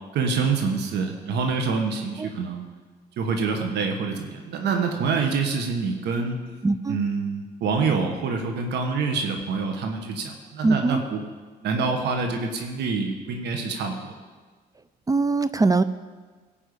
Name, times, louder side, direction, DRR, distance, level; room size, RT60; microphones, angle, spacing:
voice 1, 0.1-2.7 3.2-6.4 6.9-11.2 11.6-14.1, right 4 dB, 75° right, 4 dB, 1.5 m, -26 dB
voice 2, 6.6-7.0 10.6-11.0 15.1-15.8, right 3 dB, 20° right, 13 dB, 0.5 m, -21 dB
16.5 x 5.5 x 8.4 m, 1.4 s
cardioid pair, 90°, 17 cm